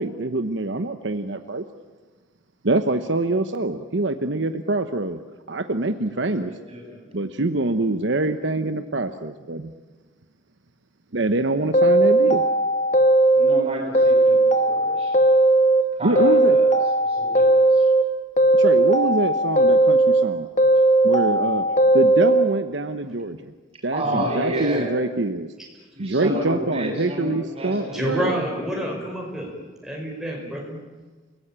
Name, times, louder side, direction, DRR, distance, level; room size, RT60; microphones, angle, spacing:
voice 1, 0.0-1.6 2.6-5.2 5.5-6.5 7.1-9.7 11.1-12.4 16.0-16.6 18.6-20.5 21.0-21.6 21.9-23.5 23.8-25.5 26.0-28.4, right 2 dB, 65° right, 8 dB, 1.0 m, -25 dB
voice 2, 6.1-7.1 13.4-15.2 16.0-17.9 23.9-25.0 25.9-28.8, equal, 30° right, 1 dB, 7.0 m, -31 dB
sound 1, 11.7-13.6 13.9-15.8 16.2-18.0 18.4-20.2 20.6-22.5, right 2 dB, 35° left, 1.6 m, -17 dB
voice 3, 24.0-24.4 27.9-29.5 29.8-30.8, equal, ahead, -2 dB, 5.4 m, -28 dB
29.0 x 18.0 x 8.9 m, 1.3 s
head